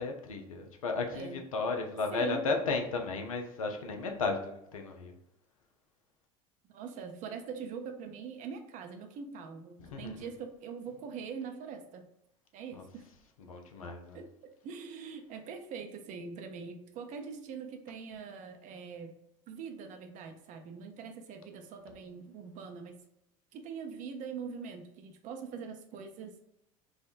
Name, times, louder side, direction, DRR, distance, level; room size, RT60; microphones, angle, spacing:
voice 1, 0.0-5.1 9.8-10.3 12.7-12.9 13.4-14.2, left 4 dB, 80° left, 4 dB, 0.5 m, -34 dB
voice 2, 2.1-2.5 6.6-12.0 12.5-13.0 14.1-19.2 19.5-23.0 23.5-26.3, right 6 dB, 45° right, 5 dB, 0.6 m, -43 dB
3.4 x 2.1 x 2.5 m, 0.80 s
figure-of-eight pair, 70°, 18 cm